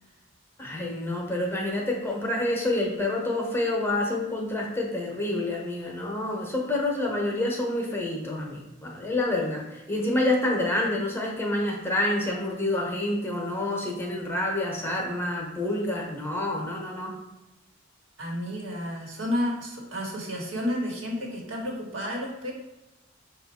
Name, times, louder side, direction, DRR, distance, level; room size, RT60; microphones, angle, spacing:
voice 1, 0.6-17.1, left 1 dB, 10° left, -1 dB, 0.8 m, -28 dB
voice 2, 18.2-22.5, left 1 dB, 85° right, -2 dB, 1.3 m, -31 dB
5.4 x 2.4 x 4.1 m, 0.97 s
head